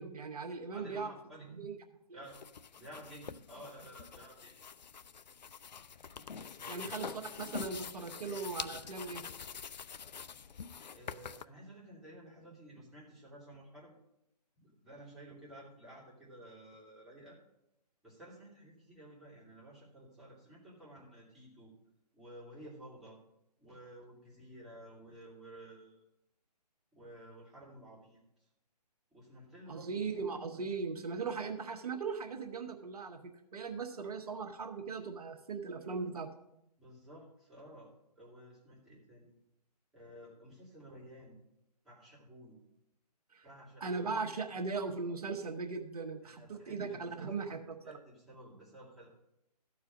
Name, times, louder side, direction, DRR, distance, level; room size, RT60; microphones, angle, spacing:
voice 1, 0.0-1.1 1.5-1.8 2.1-2.2 6.7-7.1 7.4-9.2 29.7-36.3 43.3-43.5 43.8-47.8, right 4 dB, 60° right, 5 dB, 1.3 m, -39 dB
voice 2, 0.7-1.5 2.1-2.4 2.7-4.6 6.6-7.0 10.9-13.9 14.5-17.4 18.0-21.7 22.1-23.2 23.6-26.0 26.9-28.5 29.1-30.1 36.8-37.9 38.2-39.3 39.9-41.4 41.8-42.6 43.4-44.1 46.2-47.5 47.8-49.1, right 1 dB, ahead, -8 dB, 2.8 m, -53 dB
sound 1, 2.2-11.4, left 6 dB, 85° left, 0.4 m, -46 dB
13.5 x 4.7 x 6.3 m, 0.84 s
figure-of-eight pair, 140°, 21 cm